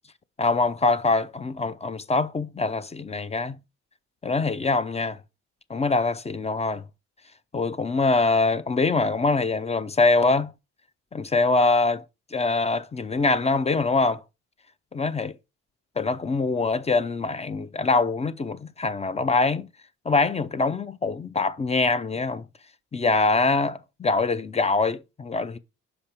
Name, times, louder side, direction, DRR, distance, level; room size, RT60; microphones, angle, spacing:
voice 1, 0.4-3.6 4.2-5.2 5.7-6.8 7.5-10.5 11.1-12.0 12.3-14.2 14.9-15.3 16.0-19.7 20.1-22.4 22.9-25.6, left 3 dB, 20° left, 0.5 m, -24 dB
5.9 x 5.1 x 4.3 m
cardioid pair, 90°, 30 cm